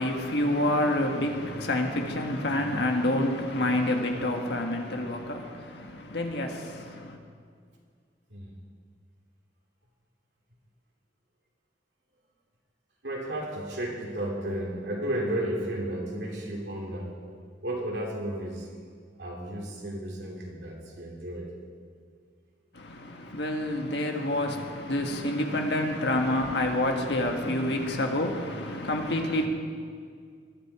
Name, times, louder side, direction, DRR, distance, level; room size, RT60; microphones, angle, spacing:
voice 1, 0.0-7.2 22.7-29.5, left 1 dB, 65° left, 1.7 m, -28 dB
voice 2, 13.0-17.2 17.6-18.7 19.2-21.5, right 1 dB, 65° right, 3.2 m, -33 dB
20.5 x 12.0 x 4.9 m
head